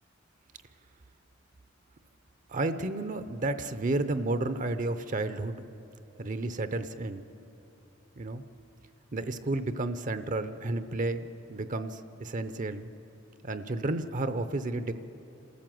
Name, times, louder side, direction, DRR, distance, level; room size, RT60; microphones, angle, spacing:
voice 1, 2.5-5.7 6.2-7.2 8.2-8.4 9.1-12.9 13.4-14.9, right 2 dB, 40° right, 10 dB, 0.6 m, -32 dB
27.0 x 13.5 x 7.7 m, 2.8 s
head